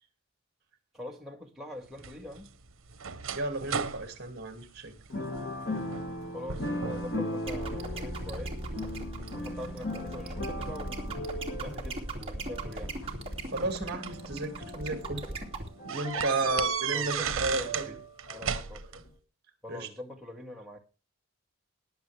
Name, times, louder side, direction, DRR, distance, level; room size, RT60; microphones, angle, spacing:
voice 1, 0.9-2.5 6.3-8.6 9.3-13.3 16.1-16.2 16.9-17.9 18.3-18.8 19.6-20.8, left 1 dB, ahead, 1.9 m, -43 dB
sound 1, 2.0-5.4 5.8-6.2 6.5-7.2 7.6-8.3 8.9-10.4 11.5-11.6 12.9-14.3 14.8-14.9 15.2-15.3 15.9-17.9 18.2-19.0, right 6 dB, 70° right, 1.1 m, -34 dB
voice 2, 3.3-4.9 13.5-15.2 15.8-17.9 19.7-19.9, right 2 dB, 45° right, 2.6 m, -33 dB
sound 2, 5.1-18.7 19.1-19.2, left 1 dB, 50° left, 2.9 m, -39 dB
sound 3, 7.5-15.7, right 2 dB, 25° right, 2.6 m, -37 dB
21.0 x 7.6 x 3.5 m
head